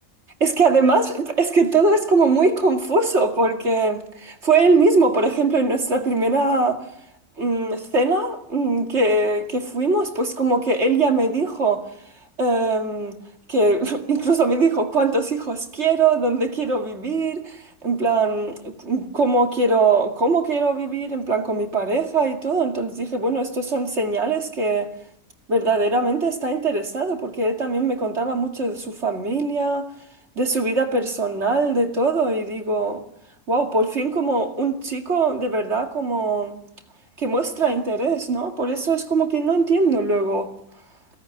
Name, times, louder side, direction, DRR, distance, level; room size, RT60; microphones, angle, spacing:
voice 1, 0.4-6.9 7.4-11.9 12.4-13.2 13.5-24.9 25.5-29.9 30.4-33.0 33.5-36.6 37.2-40.5, right 3 dB, 50° right, 2.6 m, -21 dB
23.0 x 17.5 x 9.7 m
omnidirectional pair, 1.4 m